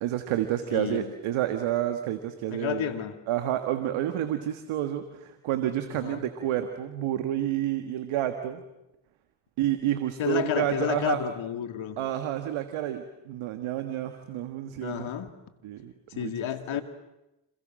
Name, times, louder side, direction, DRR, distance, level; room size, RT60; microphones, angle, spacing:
voice 1, 0.0-2.9 3.3-8.6 9.6-11.2 12.0-15.1 15.6-16.3 16.7-16.8, right 12 dB, 85° right, 8 dB, 1.7 m, -29 dB
voice 2, 0.7-1.1 2.5-3.2 6.0-6.2 10.2-12.0 14.8-15.3 16.2-16.8, left 10 dB, 75° left, 8 dB, 2.5 m, -31 dB
28.5 x 27.5 x 7.6 m, 0.93 s
supercardioid pair, 40°, 47 cm